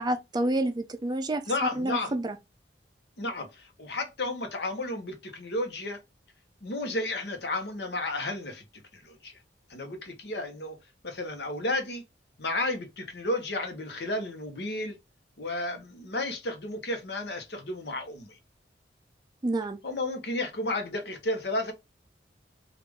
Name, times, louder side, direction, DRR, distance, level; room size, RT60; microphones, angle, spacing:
voice 1, 0.0-1.4 1.8-2.4 19.4-19.8, right 1 dB, 25° right, 0.4 m, -28 dB
voice 2, 1.5-2.1 3.2-6.0 6.6-8.6 8.9-9.4 9.7-10.8 11.0-12.0 12.4-15.0 15.4-18.4 19.8-21.7, left 2 dB, 70° left, 0.9 m, -32 dB
3.4 x 2.4 x 3.4 m
head